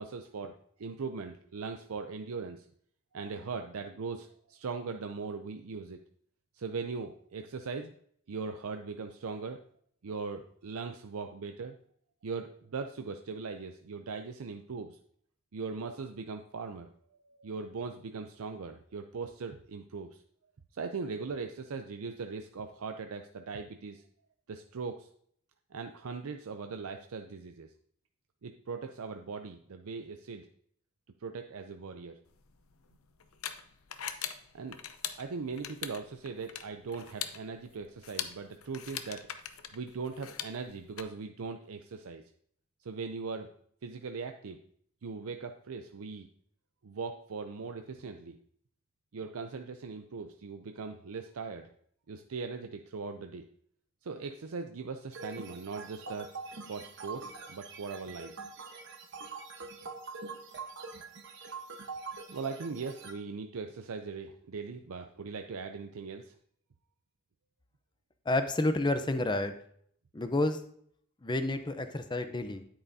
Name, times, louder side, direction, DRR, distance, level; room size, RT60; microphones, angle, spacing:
voice 1, 0.0-2.7 3.1-6.0 6.5-7.9 8.3-9.6 10.0-11.7 12.2-15.0 15.5-20.2 20.7-24.0 24.5-25.1 25.7-27.7 28.4-30.5 31.2-32.2 34.5-34.8 35.2-39.2 39.7-42.2 42.8-43.5 43.8-44.6 45.0-46.3 46.8-48.4 49.1-51.7 52.1-53.5 54.0-56.3 56.7-58.3 62.3-66.3, right 4 dB, 80° right, 6 dB, 0.5 m, -40 dB
sound 1, 32.3-41.0, left 9 dB, 90° left, 0.7 m, -42 dB
sound 2, 55.1-63.1, right 4 dB, 55° right, 1.1 m, -44 dB
voice 2, 68.3-69.5 70.1-70.6 71.2-72.6, left 2 dB, 20° left, 9 dB, 0.6 m, -30 dB
9.7 x 8.6 x 2.7 m, 0.62 s
head